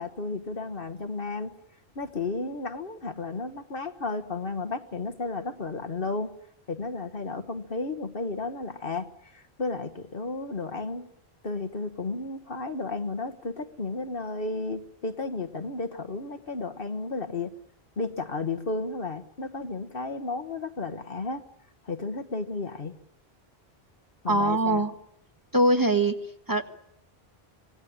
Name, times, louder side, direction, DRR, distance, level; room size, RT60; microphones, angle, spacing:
voice 1, 0.0-1.5 1.9-6.3 6.7-11.1 11.4-17.5 18.0-21.4 21.8-23.0 24.2-24.8, left 3 dB, 60° left, 8 dB, 1.5 m, -33 dB
voice 2, 24.3-24.9 25.5-26.2 26.5-26.6, right 1 dB, 20° right, 5 dB, 1.5 m, -22 dB
26.0 x 18.5 x 8.7 m, 0.75 s
omnidirectional pair, 1.1 m